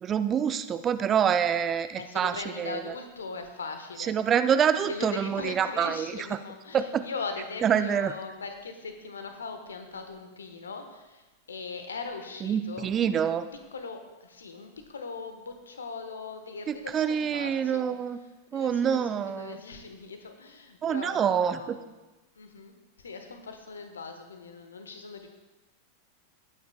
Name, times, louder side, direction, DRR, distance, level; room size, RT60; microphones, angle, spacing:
voice 1, 0.0-2.8 4.0-6.1 6.7-7.0 7.6-8.1 12.4-13.5 16.7-18.2 18.5-19.6 20.8-21.8, right 8 dB, 25° right, 12 dB, 0.4 m, -26 dB
voice 2, 1.8-4.1 4.8-12.9 13.2-13.4 13.7-17.8 18.5-21.9 22.3-25.3, left 4 dB, 70° left, 6 dB, 1.1 m, -40 dB
18.5 x 9.2 x 2.2 m, 1.1 s
figure-of-eight pair, 90°, 0 cm